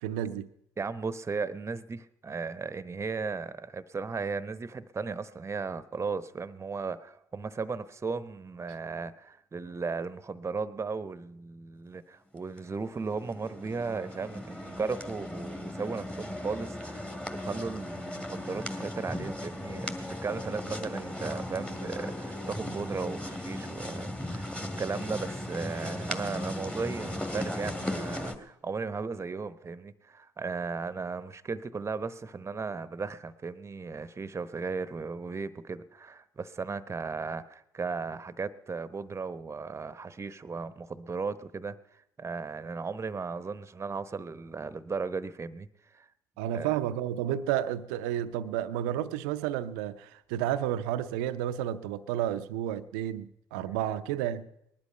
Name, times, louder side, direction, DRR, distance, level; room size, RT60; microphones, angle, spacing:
voice 1, 0.0-0.5 8.7-8.8 46.4-54.5, right 11 dB, 75° right, 0.6 m, -31 dB
voice 2, 0.8-41.8 42.2-45.7 45.9-46.1 46.5-46.7, right 4 dB, 25° right, 0.9 m, -36 dB
sound 1, 12.6-28.4, left 1 dB, 10° left, 2.0 m, -37 dB
19.5 x 11.5 x 5.6 m
hypercardioid pair, 50°, 10 cm